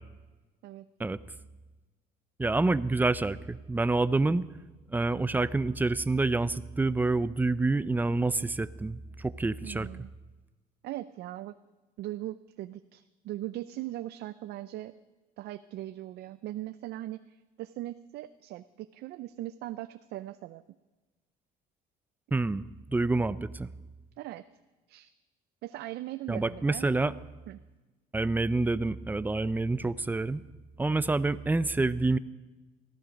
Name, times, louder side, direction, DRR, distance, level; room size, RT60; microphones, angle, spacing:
voice 1, 2.4-4.5 4.9-9.9 22.3-22.6 22.9-23.7 26.3-27.1 28.1-30.4 30.8-32.2, right 3 dB, 10° right, 16 dB, 0.5 m, -27 dB
voice 2, 9.6-10.1 10.8-11.6 12.0-14.9 15.4-20.6 24.2-24.5 24.9-25.1 25.6-26.9 27.5-27.6, right 15 dB, 75° right, 12 dB, 0.5 m, -39 dB
18.5 x 14.5 x 5.2 m, 1.2 s
cardioid pair, 110°, 17 cm